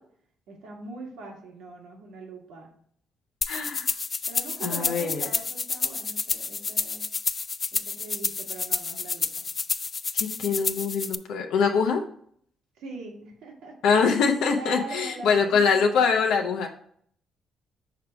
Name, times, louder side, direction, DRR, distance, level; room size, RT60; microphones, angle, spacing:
voice 1, 0.5-2.7 4.3-7.1 7.7-9.5 12.8-13.8 14.5-16.1, right 3 dB, 85° right, 0 dB, 1.7 m, -41 dB
sound 1, 3.4-11.1, left 5 dB, 35° left, 0.3 m, -29 dB
voice 2, 3.5-3.9 4.6-5.3 10.1-12.0 13.8-16.7, left 5 dB, 85° left, 3 dB, 0.6 m, -23 dB
5.7 x 3.5 x 5.8 m, 0.63 s
cardioid pair, 90°, 0 cm